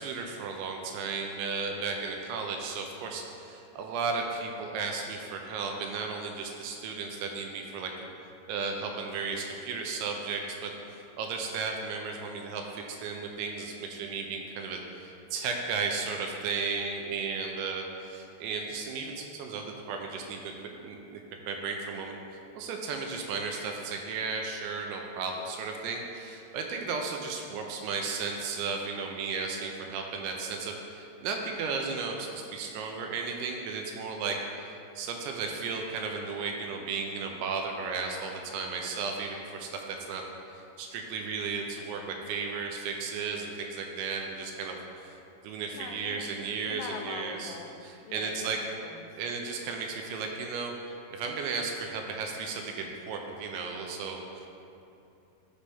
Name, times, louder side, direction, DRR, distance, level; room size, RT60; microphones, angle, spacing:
voice 1, 0.0-7.9 8.5-20.5 20.8-21.2 21.5-22.2 22.6-40.2 40.8-45.2 45.4-47.6 47.8-48.6 49.2-54.5, right 4 dB, 85° right, 2 dB, 2.8 m, -34 dB
voice 2, 45.7-46.3 46.6-47.8 48.0-49.2, left 6 dB, 85° left, 3 dB, 2.9 m, -42 dB
11.5 x 5.5 x 3.5 m, 2.8 s
omnidirectional pair, 5.5 m